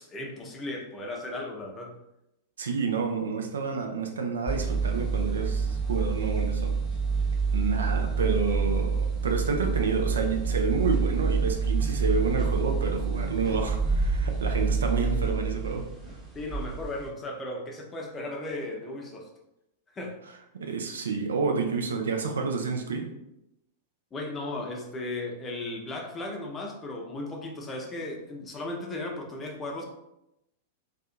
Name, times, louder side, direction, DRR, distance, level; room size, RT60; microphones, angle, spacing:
voice 1, 0.0-2.0 16.3-19.3 19.9-20.2 24.1-29.8, left 2 dB, 20° left, 1 dB, 0.6 m, -36 dB
voice 2, 2.6-6.8 7.5-15.9 20.5-23.1, right 4 dB, 70° right, 3 dB, 0.4 m, -29 dB
sound 1, 4.5-17.1, right 5 dB, 10° right, 0.9 m, -27 dB
2.6 x 2.4 x 2.4 m, 0.86 s
figure-of-eight pair, 95°, 0 cm